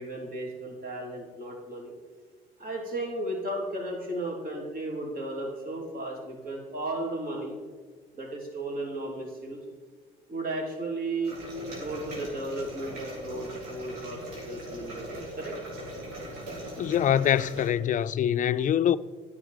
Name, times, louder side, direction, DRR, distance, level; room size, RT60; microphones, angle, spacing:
voice 1, 0.0-1.9 2.6-7.6 8.1-9.6 10.3-11.4 11.7-15.5, right 2 dB, 45° right, 3.4 m, -35 dB
sound 1, 11.2-17.7, equal, 80° right, 3.3 m, -40 dB
voice 2, 16.8-19.0, left 10 dB, 40° left, 0.4 m, -24 dB
10.0 x 7.3 x 5.1 m
hypercardioid pair, 60°, 20 cm